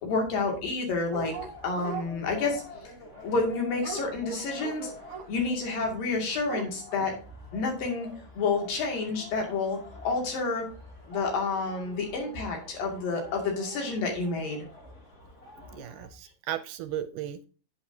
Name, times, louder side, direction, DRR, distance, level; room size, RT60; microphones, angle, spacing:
voice 1, 0.0-1.4 1.6-2.6 3.2-4.9 5.3-7.1 7.5-8.1 8.4-10.6 11.1-14.6, left 3 dB, 75° left, 1 dB, 4.1 m, -29 dB
sound 1, 1.1-16.1, left 2 dB, 25° left, 2.2 m, -48 dB
Dog, 1.1-2.1 3.1-5.3 5.9-6.1 6.3-7.1, right 4 dB, 60° right, 1.6 m, -39 dB
voice 2, 15.7-17.5, right 11 dB, 80° right, 11 dB, 2.0 m, -35 dB
9.1 x 9.1 x 2.8 m, 0.38 s
omnidirectional pair, 4.0 m